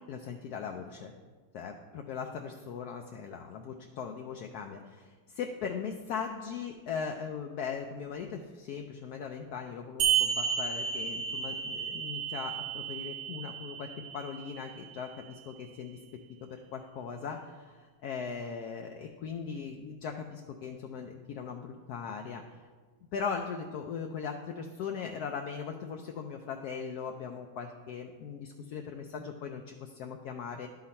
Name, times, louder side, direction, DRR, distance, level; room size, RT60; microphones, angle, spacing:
voice 1, 0.1-1.1 1.5-16.0 16.4-22.4 23.1-30.7, left 6 dB, 75° left, 4 dB, 1.0 m, -39 dB
sound 1, 10.0-15.0, right 8 dB, 90° right, 1.4 m, -32 dB
12.0 x 4.0 x 4.2 m, 1.4 s
omnidirectional pair, 1.8 m